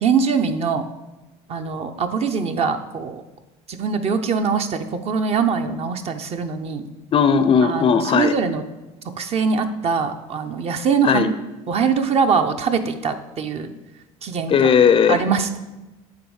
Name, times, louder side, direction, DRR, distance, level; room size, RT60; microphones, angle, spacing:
voice 1, 0.0-0.9 1.5-3.2 3.7-6.9 7.6-8.6 9.2-11.3 11.7-13.7 14.2-14.7 15.1-15.6, right 5 dB, 40° right, 8 dB, 0.7 m, -22 dB
voice 2, 7.1-8.3 11.0-11.3 14.5-15.2, left 6 dB, 35° left, 11 dB, 0.5 m, -16 dB
8.5 x 3.6 x 4.8 m, 1.1 s
supercardioid pair, 95°, 15 cm